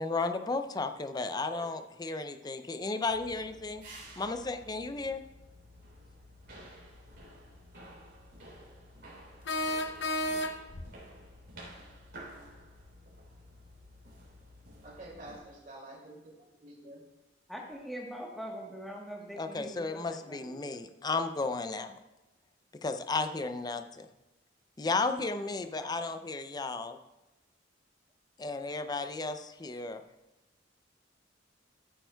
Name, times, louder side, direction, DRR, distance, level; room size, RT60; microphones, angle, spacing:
voice 1, 0.0-3.8 4.2-5.2 19.4-22.0 22.8-24.1 24.8-27.0 28.4-30.0, left 3 dB, 20° left, 8 dB, 0.4 m, -34 dB
sound 1, 3.1-15.4, equal, 65° right, 3.3 m, -52 dB
sound 2, 7.1-7.2 9.5-10.9, left 1 dB, 60° left, 0.7 m, -32 dB
voice 2, 14.8-17.0 20.1-20.5, right 1 dB, 45° right, -2 dB, 2.5 m, -49 dB
voice 3, 17.5-20.8 25.7-25.9, equal, ahead, -1 dB, 1.2 m, -43 dB
13.5 x 8.9 x 2.3 m, 1.0 s
head